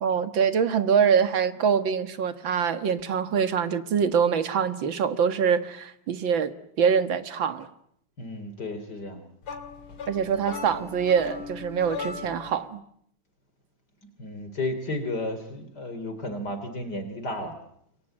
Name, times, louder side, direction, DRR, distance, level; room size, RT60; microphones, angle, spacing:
voice 1, 0.0-7.7 10.1-12.8, right 7 dB, 65° right, 11 dB, 2.3 m, -24 dB
voice 2, 8.2-9.3 14.2-17.6, left 1 dB, 50° left, 9 dB, 3.8 m, -33 dB
sound 1, 9.4-12.6, left 5 dB, 80° left, 3.6 m, -38 dB
28.0 x 23.5 x 8.9 m, 0.70 s
omnidirectional pair, 2.3 m